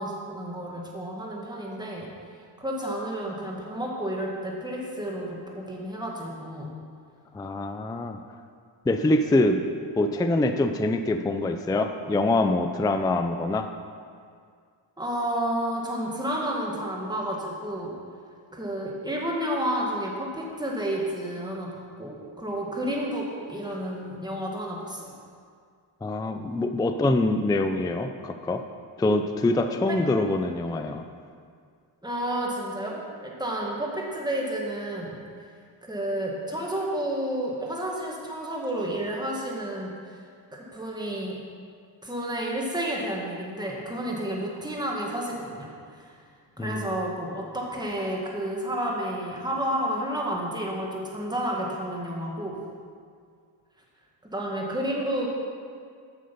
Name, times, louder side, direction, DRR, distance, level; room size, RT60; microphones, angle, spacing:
voice 1, 0.0-2.1 2.6-6.7 15.0-17.9 18.5-25.1 29.9-30.0 32.0-35.2 35.8-40.2 40.5-41.4 42.0-46.1 46.6-52.6 54.3-55.3, right 1 dB, 10° right, -2 dB, 1.7 m, -31 dB
voice 2, 7.3-8.2 8.9-9.6 10.0-13.7 26.0-28.6 29.0-31.0 46.6-46.9, left 2 dB, 10° left, 7 dB, 0.4 m, -24 dB
7.8 x 6.6 x 5.3 m, 2.1 s
cardioid pair, 80°, 48 cm